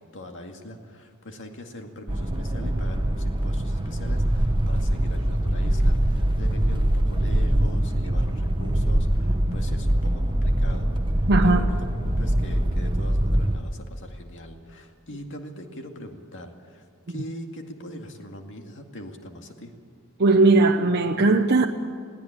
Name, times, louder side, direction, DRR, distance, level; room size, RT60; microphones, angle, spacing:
voice 1, 0.0-11.8 12.2-19.7, equal, 60° left, 4 dB, 2.2 m, -41 dB
sound 1, 2.1-13.6, right 1 dB, 20° right, 1.1 m, -23 dB
voice 2, 11.3-11.6 20.2-21.7, right 3 dB, 50° right, 3 dB, 0.8 m, -18 dB
21.5 x 16.5 x 8.9 m, 2.1 s
head